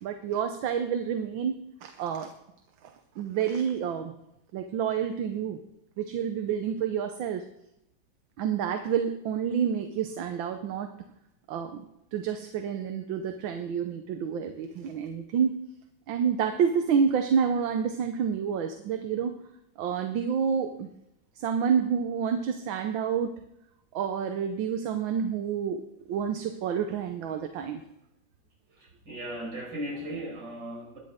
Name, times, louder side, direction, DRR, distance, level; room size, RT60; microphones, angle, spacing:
voice 1, 0.0-1.5 1.8-2.3 3.2-4.1 4.5-5.6 6.0-7.4 8.4-10.9 11.5-11.7 12.1-15.6 16.1-19.4 19.8-20.9 21.4-23.3 23.9-25.8 26.1-27.8, right 7 dB, 85° right, 7 dB, 1.6 m, -28 dB
voice 2, 28.8-31.0, right 1 dB, 65° right, -3 dB, 5.9 m, -37 dB
21.5 x 9.9 x 3.7 m, 0.83 s
omnidirectional pair, 2.1 m